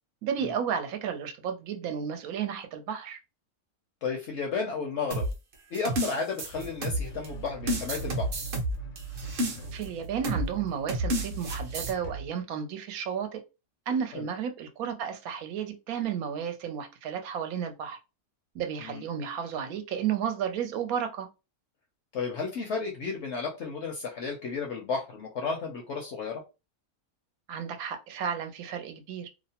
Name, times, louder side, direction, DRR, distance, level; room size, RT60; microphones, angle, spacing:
voice 1, 0.2-3.2 9.7-13.4 13.9-18.0 18.5-21.3 27.5-29.3, right 7 dB, 75° right, 1.0 m, -32 dB
voice 2, 4.0-5.2 5.7-8.3 14.1-14.3 18.8-19.0 22.1-26.4, left 5 dB, 65° left, 0.7 m, -33 dB
sound 1, 5.1-7.3 7.7-9.9 10.2-10.5 10.9-11.9, right 1 dB, 55° right, 0.6 m, -30 dB
sound 2, 6.5-12.3, right 3 dB, 80° left, 1.1 m, -40 dB
2.7 x 2.0 x 2.7 m
omnidirectional pair, 1.6 m